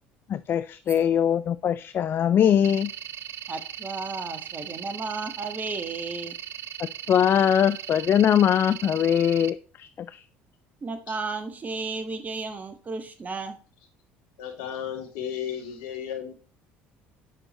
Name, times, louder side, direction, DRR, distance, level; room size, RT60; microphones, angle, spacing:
voice 1, 0.3-2.9 7.1-10.2, left 9 dB, 45° left, 14 dB, 0.4 m, -22 dB
sound 1, 2.6-9.5, right 10 dB, 55° right, 0.5 m, -38 dB
voice 2, 3.5-6.3 10.8-13.6, right 3 dB, 30° right, 9 dB, 1.5 m, -33 dB
voice 3, 14.4-16.3, left 9 dB, 80° left, 3 dB, 2.3 m, -34 dB
7.9 x 6.1 x 3.0 m, 0.36 s
supercardioid pair, 75°, 5 cm